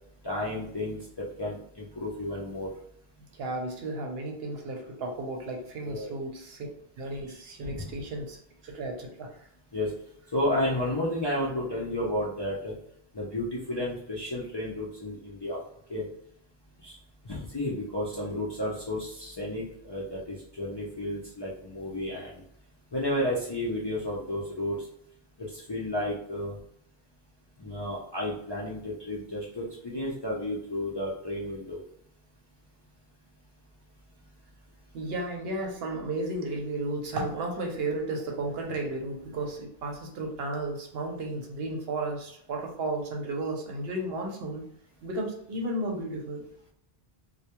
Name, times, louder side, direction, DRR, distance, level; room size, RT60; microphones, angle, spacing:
voice 1, 0.2-2.7 5.9-6.1 7.6-7.8 9.7-9.9 10.3-12.7 13.1-15.6 15.9-16.0 16.8-17.0 17.3-22.4 22.9-24.8 25.5-26.5 27.6-31.8, left 1 dB, 35° left, -6 dB, 0.4 m, -32 dB
voice 2, 3.3-6.7 7.0-8.4 8.6-9.3 34.9-44.7 45.0-46.4, right 2 dB, 75° right, 2 dB, 0.9 m, -33 dB
2.2 x 2.2 x 2.8 m, 0.70 s
omnidirectional pair, 1.0 m